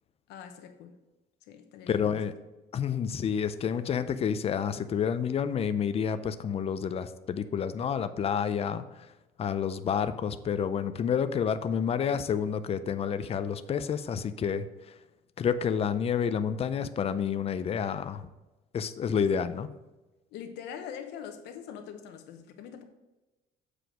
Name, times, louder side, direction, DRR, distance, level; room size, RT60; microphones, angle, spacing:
voice 1, 0.3-0.9 1.5-2.2 20.3-22.8, left 8 dB, 85° left, 1.0 m, -43 dB
voice 2, 1.9-2.3 2.7-9.1 9.4-15.0 15.4-18.3 18.7-19.7, left 7 dB, 35° left, 0.5 m, -29 dB
7.8 x 4.9 x 5.1 m
cardioid pair, 110°, 17 cm